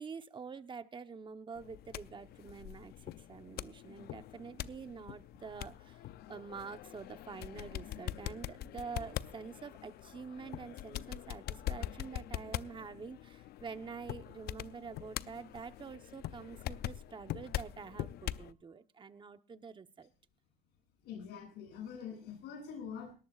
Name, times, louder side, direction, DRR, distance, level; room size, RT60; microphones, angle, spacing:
voice 1, 0.0-20.1, right 5 dB, 30° right, 9 dB, 1.0 m, -47 dB
sound 1, 1.5-18.5, left 13 dB, 70° left, 0.6 m, -43 dB
voice 2, 21.0-23.1, left 7 dB, 85° left, 4 dB, 7.2 m, -44 dB
20.0 x 18.0 x 2.5 m, 0.37 s
cardioid pair, 110°, 17 cm